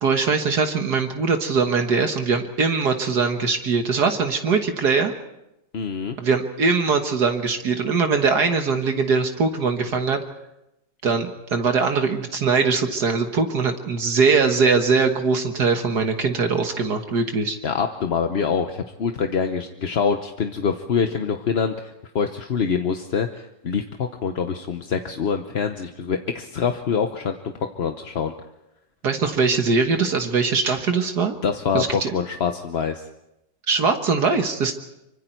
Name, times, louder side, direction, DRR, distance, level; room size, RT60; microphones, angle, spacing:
voice 1, 0.0-5.1 6.2-10.2 11.0-17.6 29.0-31.3 31.7-32.1 33.7-34.7, right 4 dB, 65° right, 5 dB, 1.9 m, -21 dB
voice 2, 5.7-6.2 17.6-28.3 31.4-33.0, left 6 dB, 45° left, 6 dB, 0.9 m, -25 dB
25.5 x 24.5 x 4.5 m, 0.90 s
omnidirectional pair, 1.9 m